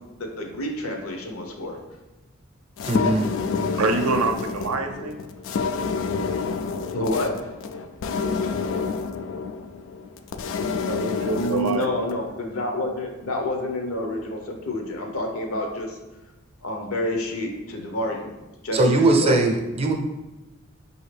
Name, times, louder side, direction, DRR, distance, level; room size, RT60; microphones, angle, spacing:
voice 1, 0.0-1.8 6.8-7.4 8.4-8.5 11.4-16.0 16.6-18.3 18.6-19.4, left 1 dB, 85° left, 2 dB, 0.7 m, -29 dB
sound 1, 2.8-12.2, left 5 dB, 65° left, 0.3 m, -28 dB
voice 2, 2.8-3.3 18.7-19.9, right 2 dB, 30° right, 2 dB, 0.5 m, -20 dB
voice 3, 3.7-5.2 10.9-11.9, right 4 dB, 85° right, 5 dB, 0.5 m, -25 dB
5.0 x 2.7 x 3.2 m, 1.0 s
head